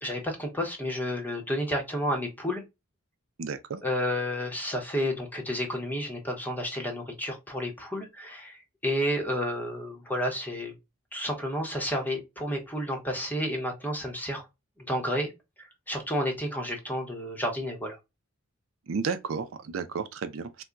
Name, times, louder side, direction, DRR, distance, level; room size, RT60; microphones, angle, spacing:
voice 1, 0.0-2.7 3.8-10.7 11.1-14.5 14.8-15.3 15.6-18.0, equal, 10° left, 0.9 m, -31 dB
voice 2, 3.4-3.8 18.9-20.6, right 5 dB, 70° right, 0.4 m, -32 dB
4.1 x 2.2 x 2.3 m
head